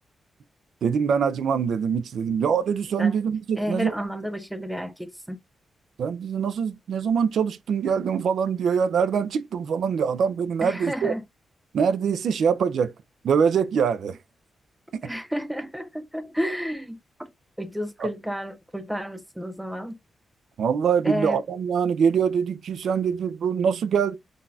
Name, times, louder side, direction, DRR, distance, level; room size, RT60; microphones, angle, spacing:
voice 1, 0.8-3.9 6.0-11.2 11.7-12.9 13.2-14.2 18.0-18.1 20.6-24.1, right 6 dB, 65° right, 0.4 m, -24 dB
voice 2, 3.6-5.4 10.6-11.2 15.0-17.3 17.6-20.0 21.0-21.4, equal, 5° right, 0.4 m, -31 dB
3.9 x 2.4 x 2.7 m
wide cardioid pair, 170°, 0 cm